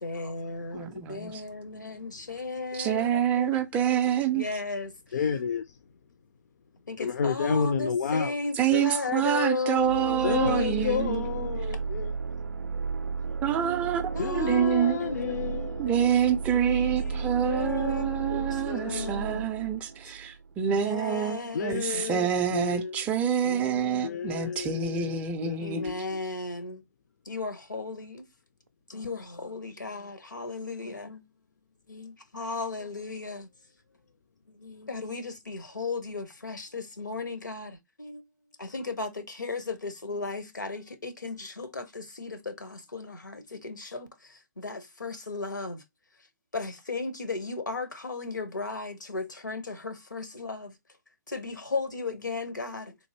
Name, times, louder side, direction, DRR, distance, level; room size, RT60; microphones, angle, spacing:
voice 1, 0.0-3.6 4.3-5.3 6.9-11.2 14.1-15.5 15.9-16.4 17.4-19.7 20.7-22.3 23.4-25.2 25.6-26.8 27.2-28.3 28.9-31.2 31.9-33.5 34.5-38.2 38.6-45.8 46.5-50.8 51.3-53.0, left 3 dB, 85° left, 0.8 m, -36 dB
voice 2, 0.7-1.3 2.7-4.5 8.6-11.3 13.4-15.0 15.8-25.8, right 9 dB, 15° right, 0.3 m, -27 dB
voice 3, 5.1-5.6 7.0-8.3 8.7-8.8 10.2-12.1 14.2-15.9 16.5-19.1 21.5-22.3 22.5-23.0 24.0-26.0, left 6 dB, 60° left, 0.4 m, -31 dB
sound 1, 9.8-20.5, right 5 dB, 85° right, 0.4 m, -34 dB
3.4 x 2.6 x 2.8 m
figure-of-eight pair, 130°, 10 cm